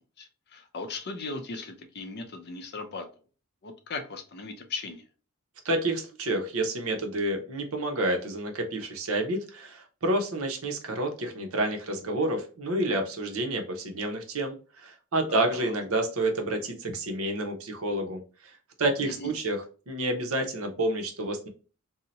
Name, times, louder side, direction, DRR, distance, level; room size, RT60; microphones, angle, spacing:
voice 1, 0.2-3.1 3.6-5.0 15.3-15.7 19.0-19.3, left 3 dB, 50° left, 5 dB, 0.6 m, -38 dB
voice 2, 5.6-18.5 18.8-21.5, right 1 dB, 75° right, 4 dB, 0.8 m, -29 dB
2.7 x 2.1 x 3.9 m, 0.37 s
head